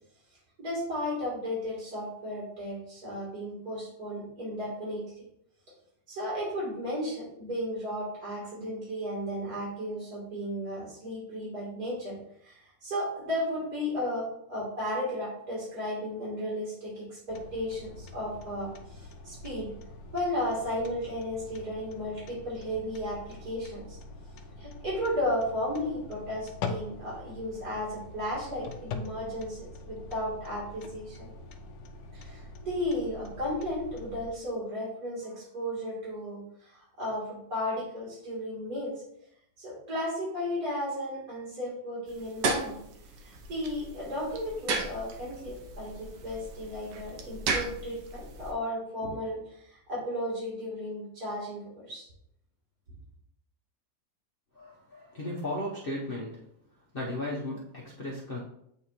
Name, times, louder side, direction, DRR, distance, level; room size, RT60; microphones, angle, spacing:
voice 1, 0.6-5.0 6.1-12.1 12.4-19.7 20.1-24.0 24.6-31.3 32.1-38.9 39.6-42.8 43.2-49.4 49.6-52.0, left 1 dB, 60° right, -7 dB, 3.1 m, -34 dB
sound 1, 17.3-34.3, left 3 dB, 85° left, 1.3 m, -44 dB
sound 2, 42.1-48.5, right 4 dB, 85° right, 1.4 m, -35 dB
voice 2, 54.5-56.4 56.9-58.4, left 1 dB, 40° left, -4 dB, 0.9 m, -35 dB
8.6 x 3.7 x 2.9 m, 0.73 s
omnidirectional pair, 1.9 m